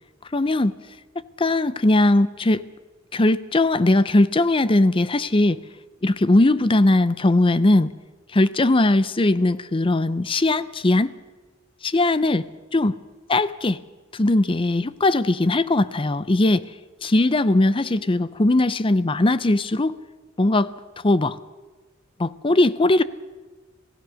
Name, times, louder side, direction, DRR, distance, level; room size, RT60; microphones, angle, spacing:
voice 1, 0.3-0.7 1.4-2.6 3.1-5.6 6.0-7.9 8.3-11.1 11.8-12.5 12.7-12.9 13.3-13.8 14.1-16.7 17.0-19.9 20.4-20.7 21.0-21.4 22.2-23.0, left 2 dB, 25° left, 16 dB, 0.6 m, -19 dB
27.0 x 16.5 x 6.3 m, 1.2 s
head